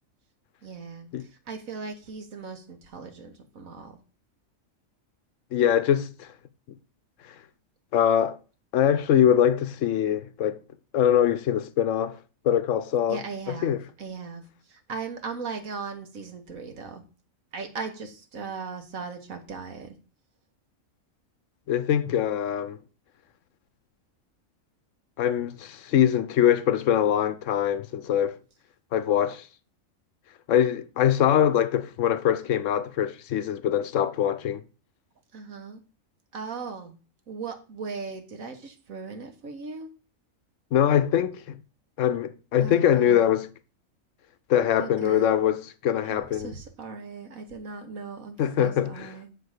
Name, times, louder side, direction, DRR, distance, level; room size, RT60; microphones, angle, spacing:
voice 1, 0.6-4.0 13.1-14.4 14.7-17.0 17.5-20.0 35.3-35.8 36.3-37.0 37.3-39.9 42.6-43.3 44.8-45.3 46.0-49.3, right 4 dB, 75° right, 1.6 m, -38 dB
voice 2, 5.5-6.3 7.9-8.4 8.7-10.6 10.9-12.2 12.4-13.2 13.5-13.8 21.7-22.8 25.2-28.4 28.9-29.5 30.5-34.6 40.7-41.6 42.0-43.5 44.5-46.5 48.4-49.1, left 10 dB, 70° left, 0.9 m, -23 dB
6.5 x 4.6 x 6.4 m
omnidirectional pair, 1.4 m